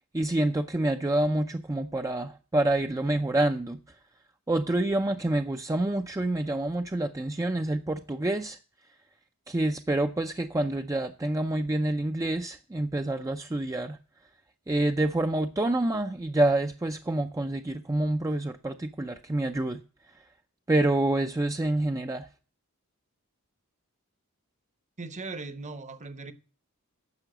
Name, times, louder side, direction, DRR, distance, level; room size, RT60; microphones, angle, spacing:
voice 1, 0.1-3.8 4.5-8.6 9.5-14.0 14.7-19.8 20.7-22.3, right 1 dB, 15° right, 0.5 m, -27 dB
voice 2, 25.0-26.3, right 3 dB, 35° right, 0.9 m, -38 dB
10.5 x 7.0 x 7.8 m
head